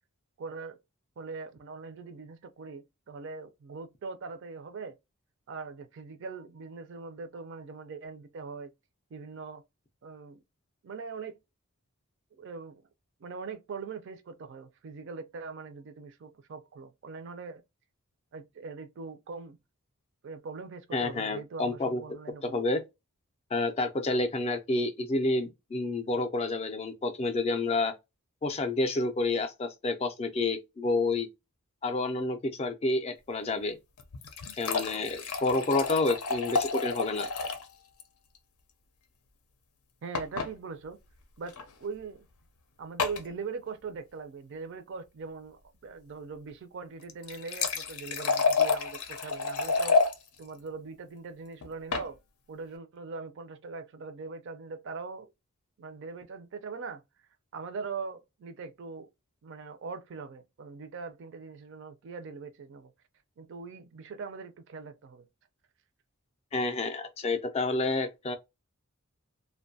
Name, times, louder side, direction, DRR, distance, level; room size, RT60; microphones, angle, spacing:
voice 1, 0.4-0.8 1.2-5.0 5.5-8.7 9.1-9.6 10.0-10.4 10.8-11.4 12.3-12.9 13.2-17.6 18.3-19.6 20.2-22.7 40.0-41.0 41.4-41.5 41.8-42.3 42.8-50.0 50.4-52.2 52.5-55.3 55.8-57.0 57.5-59.1 59.4-62.9 63.4-65.3, right 4 dB, 55° right, 0.4 m, -41 dB
voice 2, 20.9-22.0 22.5-22.8 23.5-27.9 28.4-31.3 31.8-33.8 34.6-37.3 66.5-68.4, left 2 dB, 30° left, 0.3 m, -29 dB
sound 1, 34.0-37.7 38.0-38.1 38.3-38.4 40.1-40.5 41.5-41.6 43.0-43.3 47.0-50.1 51.6-52.1, left 4 dB, 80° left, 0.5 m, -29 dB
2.5 x 2.2 x 2.6 m
head